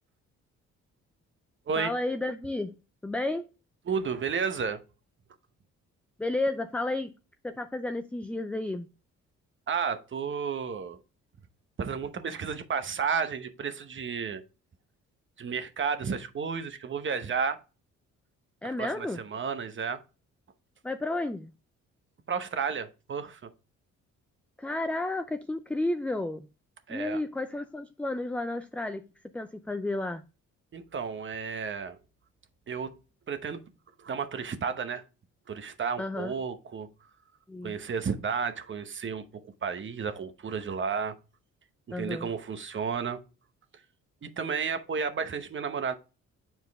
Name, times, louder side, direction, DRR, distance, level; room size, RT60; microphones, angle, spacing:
voice 1, 1.8-2.8 3.0-3.5 6.2-7.1 7.4-8.9 18.6-19.2 20.8-21.5 24.6-26.5 26.9-29.1 29.3-30.2 36.0-36.3 37.5-37.8 41.9-42.3, left 2 dB, 5° left, 0.3 m, -32 dB
voice 2, 3.9-4.8 9.7-11.0 11.8-14.4 15.4-17.6 18.8-20.0 22.3-23.5 26.9-27.2 30.7-32.0 32.7-32.9 33.3-33.6 34.0-35.0 35.5-36.9 37.6-39.3 39.6-41.1 41.9-43.2 44.2-45.9, right 6 dB, 40° right, 0.9 m, -32 dB
7.5 x 4.5 x 3.4 m
cardioid pair, 90°, 30 cm